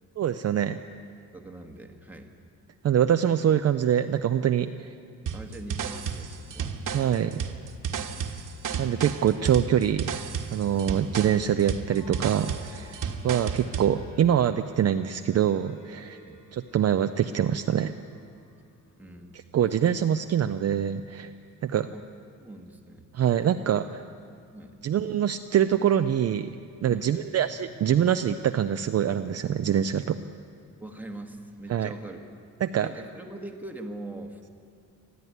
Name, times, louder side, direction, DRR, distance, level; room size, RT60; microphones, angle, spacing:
voice 1, 0.2-0.8 2.8-4.9 6.9-7.4 8.8-10.1 10.5-16.2 16.5-17.9 19.3-21.3 21.6-21.9 23.1-24.0 24.8-26.5 26.8-30.2 31.7-31.9 32.6-32.9, right 9 dB, 45° right, 8 dB, 0.5 m, -24 dB
voice 2, 1.3-2.3 5.3-6.7 8.0-8.2 10.7-11.0 13.1-13.2 16.3-16.4 19.0-19.4 21.9-22.1 22.4-23.1 24.5-24.8 26.9-27.1 30.8-32.2 32.8-34.5, right 2 dB, 5° right, 2 dB, 1.4 m, -42 dB
sound 1, 5.3-13.9, right 7 dB, 60° right, 1.4 m, -32 dB
sound 2, 11.9-19.5, left 1 dB, 90° left, 4.2 m, -55 dB
20.5 x 14.0 x 9.3 m, 2.4 s
wide cardioid pair, 160°, 35 cm